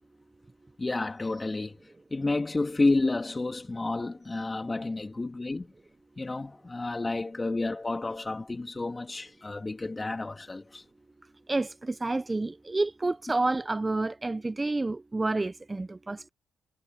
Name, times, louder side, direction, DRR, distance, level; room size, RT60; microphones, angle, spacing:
voice 1, 0.8-1.8 2.1-5.7 6.2-10.8, left 2 dB, 25° left, 3.0 m, -30 dB
voice 2, 11.5-16.3, right 2 dB, 25° right, 0.7 m, -29 dB
supercardioid pair, 50°, 0 cm